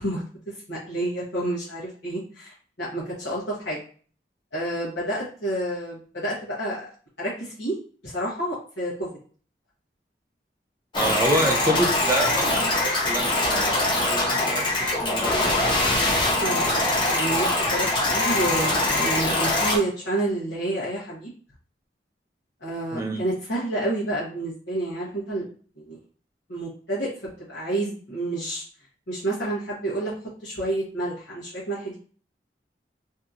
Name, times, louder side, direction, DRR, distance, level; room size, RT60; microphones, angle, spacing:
voice 1, 0.0-3.8 4.5-6.9 7.2-7.8 8.0-9.1 16.4-21.3 22.6-25.4 25.9-26.0 26.5-27.1 27.5-28.6 29.1-30.1 30.4-32.0, right 1 dB, 80° left, -8 dB, 0.9 m, -29 dB
sound 1, 10.9-19.8, left 2 dB, 25° left, 0.6 m, -23 dB
voice 2, 11.0-15.7 22.9-23.2, right 1 dB, 15° right, 1 dB, 0.5 m, -28 dB
2.7 x 2.7 x 2.4 m, 0.43 s
head